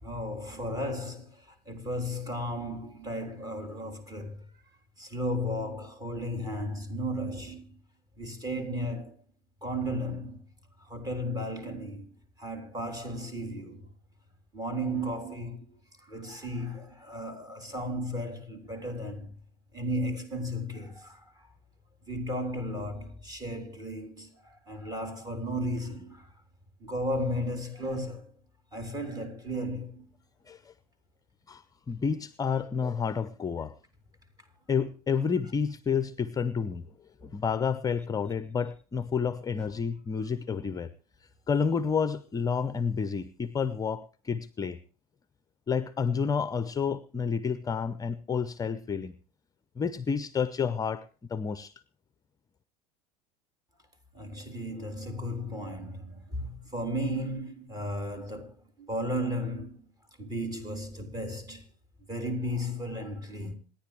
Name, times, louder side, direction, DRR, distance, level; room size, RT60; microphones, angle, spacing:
voice 1, 0.0-4.4 5.0-7.8 8.2-9.1 9.6-10.4 10.8-13.9 14.5-19.3 19.7-21.5 22.1-26.3 26.8-28.3 28.7-30.0 39.6-39.7 54.1-59.8 60.2-61.7 62.1-63.6, equal, 20° right, 3.5 m, -34 dB
voice 2, 31.5-33.7 34.7-36.9 37.2-40.9 41.2-44.8 45.7-49.1 49.8-51.7, left 6 dB, 20° left, 0.7 m, -30 dB
27.5 x 10.5 x 3.2 m
figure-of-eight pair, 75°, 19 cm